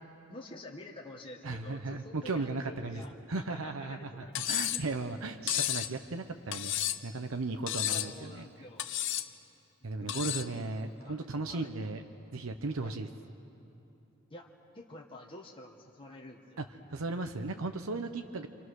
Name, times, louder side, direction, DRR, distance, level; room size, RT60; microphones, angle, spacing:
voice 1, 0.3-4.3 4.7-4.8 7.7-8.8 10.0-10.7 11.0-11.7 12.8-13.0 14.3-16.6, left 2 dB, 25° left, -2 dB, 1.4 m, -49 dB
voice 2, 1.4-3.0 3.3-6.7 7.0-8.5 9.8-12.0 12.3-13.1 16.6-16.7 16.9-18.5, right 3 dB, 80° right, 6 dB, 0.8 m, -36 dB
Cutlery silverware, 4.3-4.9 5.5-5.9 6.5-7.1 7.7-8.2 8.8-9.3 10.1-10.5, left 12 dB, 65° left, 0.8 m, -32 dB
27.0 x 26.0 x 6.4 m, 3.0 s
head